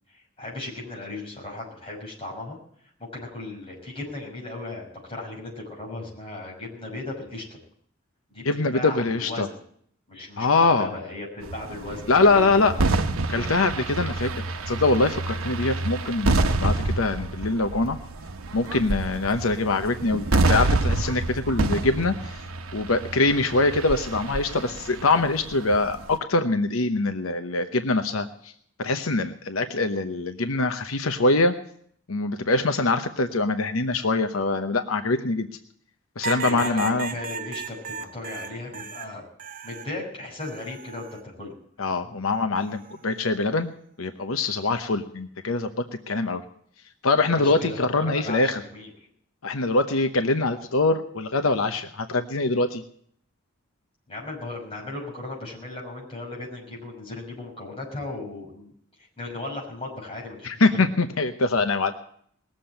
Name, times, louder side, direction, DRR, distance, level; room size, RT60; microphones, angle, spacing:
voice 1, 0.1-2.6 3.0-7.6 8.3-8.4 8.7-9.6 10.1-12.0 12.3-12.8 36.4-39.2 39.6-41.5 47.4-48.9 54.1-58.7 59.0-60.8, left 2 dB, 25° left, -3 dB, 6.2 m, -36 dB
voice 2, 8.4-9.5 10.4-10.9 12.1-12.7 13.3-14.3 14.7-18.0 18.5-22.4 22.7-28.5 28.8-31.5 32.1-35.5 36.2-37.1 41.8-43.7 44.0-46.4 47.0-48.6 49.4-52.8 60.4-61.9, left 3 dB, 90° left, 8 dB, 0.9 m, -23 dB
sound 1, 11.4-26.2, right 2 dB, 90° right, 1.0 m, -27 dB
sound 2, 36.2-39.9 40.4-41.2 42.6-43.0, right 5 dB, 40° right, 0.7 m, -35 dB
19.5 x 7.6 x 8.9 m, 0.63 s
head